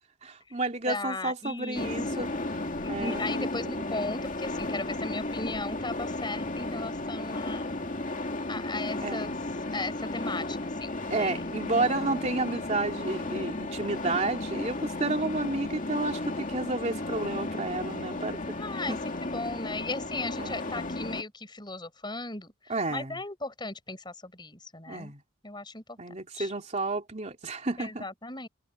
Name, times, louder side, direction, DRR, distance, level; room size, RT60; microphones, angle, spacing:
voice 1, 0.2-3.7 9.0-9.3 11.1-18.6 18.9-19.0 20.4-20.6 22.7-23.2 24.9-25.2 26.0-28.1, right 2 dB, 35° right, 2.9 m, -31 dB
voice 2, 0.9-2.4 2.8-7.7 8.5-9.3 9.7-11.4 18.6-25.1 25.4-26.0 26.3-26.5 27.8-28.5, left 2 dB, 20° left, 7.5 m, -37 dB
sound 1, 1.7-21.2, left 2 dB, 40° left, 2.2 m, -34 dB
head